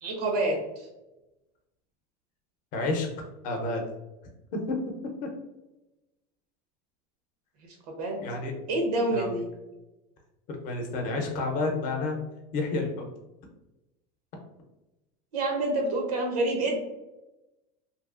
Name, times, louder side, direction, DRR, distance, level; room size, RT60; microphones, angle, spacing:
voice 1, 0.0-0.9 8.0-8.2 8.7-9.5 15.3-16.8, right 2 dB, 90° right, 2 dB, 0.7 m, -27 dB
voice 2, 2.7-3.1 3.4-3.8 4.7-4.8 8.2-8.5 9.1-9.4 10.5-12.2 12.5-13.1, left 3 dB, 45° left, 2 dB, 0.6 m, -30 dB
2.8 x 2.4 x 2.4 m, 1.0 s
supercardioid pair, 140°, 19 cm